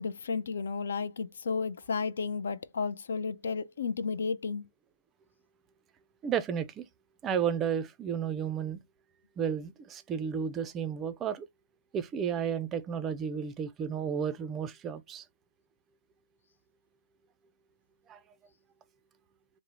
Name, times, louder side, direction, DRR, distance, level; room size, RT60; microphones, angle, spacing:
voice 1, 0.0-4.7, left 5 dB, 70° left, 0.4 m, -33 dB
voice 2, 6.2-6.9 7.2-8.8 9.4-11.5 11.9-15.2 18.1-18.2, right 7 dB, 20° right, 0.4 m, -32 dB
3.5 x 2.0 x 2.9 m
hypercardioid pair, 130°, 0 cm